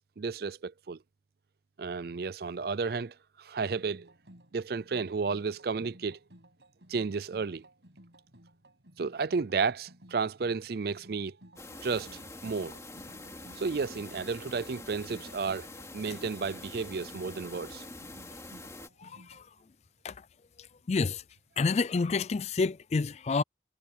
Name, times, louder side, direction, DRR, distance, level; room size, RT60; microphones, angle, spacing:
voice 1, 0.2-1.0 1.8-4.1 4.5-6.2 6.9-7.6 9.0-11.3 11.8-12.8 13.6-17.8, right 5 dB, 60° right, 0.5 m, -32 dB
sound 1, 3.6-19.4, right 1 dB, 80° right, 6.3 m, -57 dB
sound 2, 11.6-18.9, left 2 dB, 15° left, 2.7 m, -46 dB
voice 2, 19.0-19.4 20.0-20.1 20.9-21.2 21.6-23.4, left 4 dB, 40° left, 0.4 m, -28 dB
head